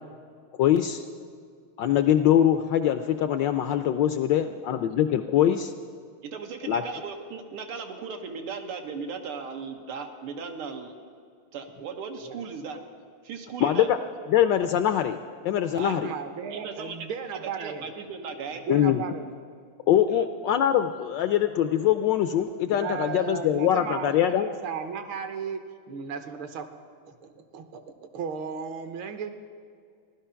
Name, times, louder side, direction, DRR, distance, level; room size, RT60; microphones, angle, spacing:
voice 1, 0.6-1.0 1.8-5.7 6.7-6.8 13.6-14.0 14.3-15.2 15.4-16.1 18.7-19.0 19.9-24.5, left 10 dB, 75° left, 9 dB, 1.0 m, -23 dB
voice 2, 4.1-4.6 12.2-12.5 15.9-17.9 18.5-19.3 22.7-25.6 25.9-26.7 27.0-29.4, right 6 dB, 70° right, 7 dB, 1.7 m, -35 dB
voice 3, 6.2-10.9 11.5-12.8 13.2-13.9 15.8-16.0 16.5-18.6 20.1-20.3, right 5 dB, 90° right, 4 dB, 2.0 m, -37 dB
15.5 x 11.5 x 5.6 m, 2.2 s
omnidirectional pair, 2.4 m